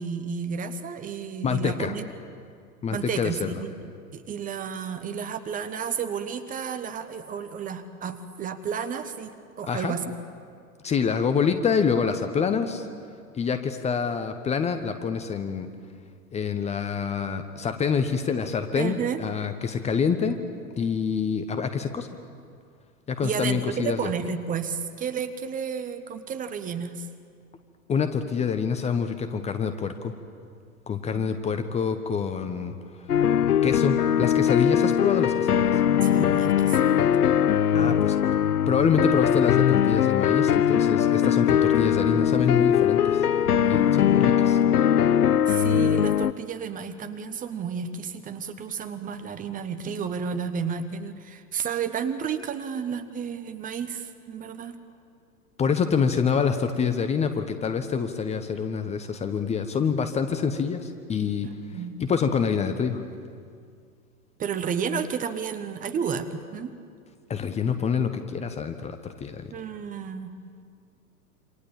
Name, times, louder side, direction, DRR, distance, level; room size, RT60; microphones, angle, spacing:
voice 1, 0.0-2.0 2.9-3.7 4.1-9.3 9.6-10.0 18.7-19.2 23.2-27.1 31.1-31.3 36.0-37.2 45.5-54.8 61.4-62.0 64.4-66.8 69.5-70.4, right 7 dB, 15° right, 9 dB, 1.2 m, -32 dB
voice 2, 1.4-1.9 2.8-3.5 9.7-9.9 10.8-12.9 13.3-15.7 16.3-20.4 20.8-22.1 23.1-24.1 27.9-30.1 30.9-32.7 33.6-35.8 37.7-38.2 38.7-43.2 43.7-44.6 55.6-61.5 62.0-63.0 67.3-69.5, left 6 dB, 15° left, 8 dB, 1.1 m, -26 dB
sound 1, 33.1-46.3, left 9 dB, 70° left, 0.8 m, -21 dB
28.0 x 26.0 x 7.3 m, 2.2 s
figure-of-eight pair, 105°, 47 cm